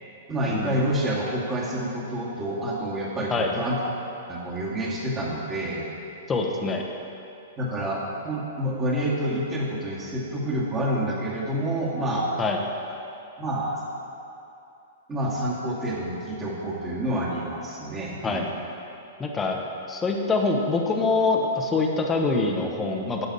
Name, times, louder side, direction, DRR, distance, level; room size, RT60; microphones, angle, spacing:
voice 1, 0.3-3.8 4.3-5.9 7.6-12.3 13.4-13.8 15.1-18.5, right 1 dB, 15° right, -4 dB, 1.9 m, -28 dB
voice 2, 6.3-6.8 12.4-12.6 18.2-18.4 19.2-19.6 19.9-23.3, left 3 dB, 15° left, 1 dB, 1.0 m, -24 dB
11.5 x 8.9 x 4.1 m, 2.7 s
hypercardioid pair, 150°, 0 cm